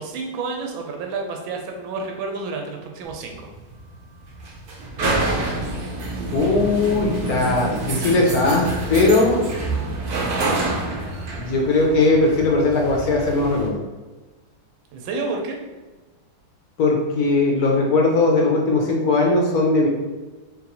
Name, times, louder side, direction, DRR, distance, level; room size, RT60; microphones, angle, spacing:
voice 1, 0.0-3.5 14.9-15.6, right 3 dB, 85° right, 2 dB, 1.4 m, -30 dB
sound 1, 3.0-13.7, right 2 dB, 60° right, 1.1 m, -27 dB
voice 2, 6.3-9.4 11.4-13.8 16.8-19.9, left 2 dB, 65° left, 0 dB, 1.0 m, -19 dB
3.8 x 3.8 x 2.9 m, 1.2 s
omnidirectional pair, 2.2 m